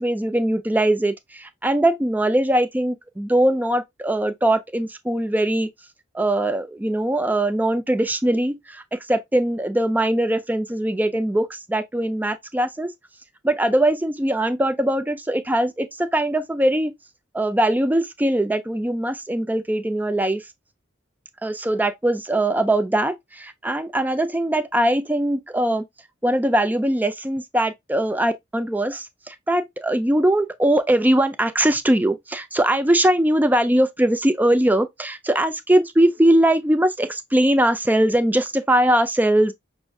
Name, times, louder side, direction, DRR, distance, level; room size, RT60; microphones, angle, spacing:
voice 1, 0.0-5.7 6.1-12.9 13.4-16.9 17.3-20.4 21.4-25.8 26.2-39.5, right 1 dB, 10° right, 0.4 m, -21 dB
6.0 x 2.6 x 2.3 m
head